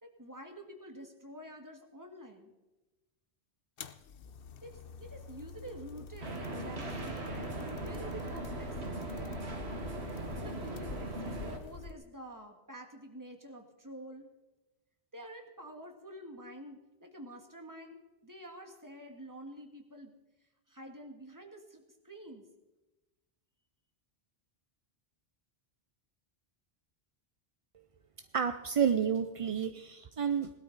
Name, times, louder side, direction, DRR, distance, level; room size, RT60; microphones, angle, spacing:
voice 1, 0.0-2.5 4.6-9.0 10.4-11.1 11.4-14.3 15.1-20.1 20.7-22.5, right 1 dB, 20° right, 3 dB, 1.8 m, -48 dB
sound 1, 3.8-11.9, left 5 dB, 65° left, 0.9 m, -46 dB
sound 2, 6.2-11.6, right 2 dB, 85° right, 1.9 m, -39 dB
voice 2, 28.3-30.5, right 7 dB, 45° right, 9 dB, 0.5 m, -30 dB
19.0 x 12.5 x 4.0 m, 1.1 s
omnidirectional pair, 1.1 m